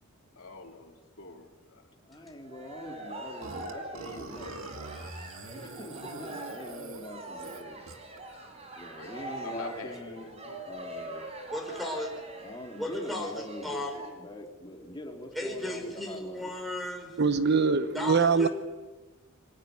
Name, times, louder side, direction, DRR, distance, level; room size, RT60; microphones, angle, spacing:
voice 1, 0.4-1.8 9.0-9.1 9.4-10.6, left 3 dB, 75° left, 3.1 m, -45 dB
voice 2, 2.0-4.5 5.5-7.8 8.7-11.3 12.4-16.5, left 1 dB, 20° left, 3.5 m, -44 dB
Cheering, 2.3-14.1, right 1 dB, 30° right, 5.0 m, -43 dB
Burping eructation, 3.4-8.2, right 3 dB, 70° right, 2.3 m, -43 dB
voice 3, 11.5-12.1 12.8-14.0 15.4-17.2 17.9-18.5, left 1 dB, ahead, 5.4 m, -35 dB
voice 4, 17.2-18.5, right 5 dB, 55° right, 0.9 m, -23 dB
25.0 x 15.5 x 9.8 m
head